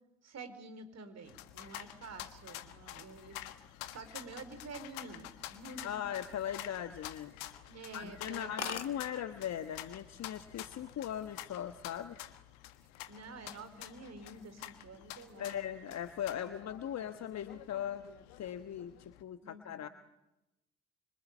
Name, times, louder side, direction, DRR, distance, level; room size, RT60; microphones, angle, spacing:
voice 1, 0.2-3.4 3.9-5.9 7.7-8.8 13.1-15.6 19.4-19.9, right 3 dB, 50° right, 10 dB, 4.5 m, -48 dB
sound 1, 1.3-19.2, left 14 dB, 70° left, 1.6 m, -49 dB
voice 2, 5.8-7.3 7.9-12.2 14.2-14.4 15.4-18.1 18.4-19.9, left 10 dB, 50° left, 10 dB, 1.3 m, -39 dB
sound 2, 6.1-7.1 7.5-7.7 8.1-8.2 8.3-8.4 8.6-8.9 9.9-10.2 10.5-10.9, left 8 dB, 90° left, 0.9 m, -42 dB
26.5 x 25.5 x 8.5 m, 0.95 s
figure-of-eight pair, 40°, 34 cm